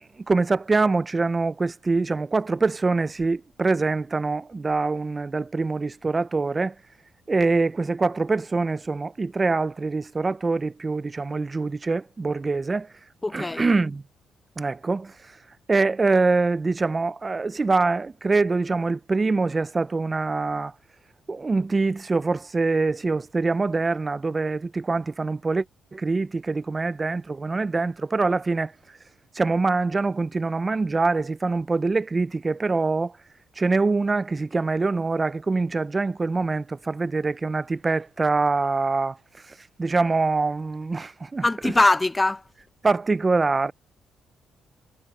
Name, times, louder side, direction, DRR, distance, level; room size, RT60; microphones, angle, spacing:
voice 1, 0.2-6.7 7.3-12.9 13.3-14.0 14.6-15.1 15.7-20.7 21.3-25.6 25.9-28.7 29.3-33.1 33.6-39.2 39.5-41.7 42.8-43.7, right 3 dB, 25° right, 0.5 m, -24 dB
voice 2, 13.2-13.6 41.4-42.4, left 2 dB, 15° left, 0.7 m, -21 dB
cardioid pair, 90°, 0 cm